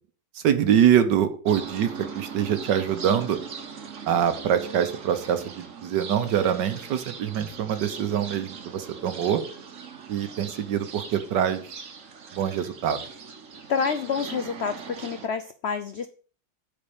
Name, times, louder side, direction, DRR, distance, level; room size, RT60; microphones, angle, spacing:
voice 1, 0.3-3.4 4.1-9.4 10.1-11.7 12.3-13.0, right 9 dB, 75° right, 10 dB, 1.6 m, -24 dB
sound 1, 1.5-15.3, right 6 dB, 50° right, 1.3 m, -40 dB
voice 2, 13.7-16.1, left 6 dB, 70° left, 9 dB, 0.6 m, -28 dB
8.5 x 4.2 x 7.1 m, 0.42 s
omnidirectional pair, 1.9 m